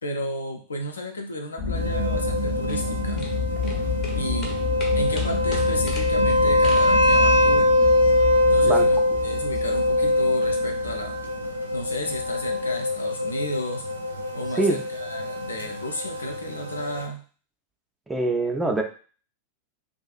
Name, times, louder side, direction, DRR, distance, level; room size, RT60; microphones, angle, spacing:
voice 1, 0.0-3.2 4.1-4.6 4.9-7.7 8.5-11.2 11.7-13.8 14.3-17.2, left 1 dB, 75° left, 4 dB, 0.5 m, -33 dB
sound 1, 1.6-12.8, left 4 dB, 55° left, 1.0 m, -30 dB
sound 2, 1.7-17.0, left 1 dB, 85° right, 0.3 m, -23 dB
sound 3, 2.2-7.5, left 2 dB, 30° left, 0.6 m, -40 dB
voice 2, 18.1-18.8, right 2 dB, 10° right, 3 dB, 0.4 m, -24 dB
2.5 x 2.3 x 2.4 m, 0.38 s
figure-of-eight pair, 90°, 0 cm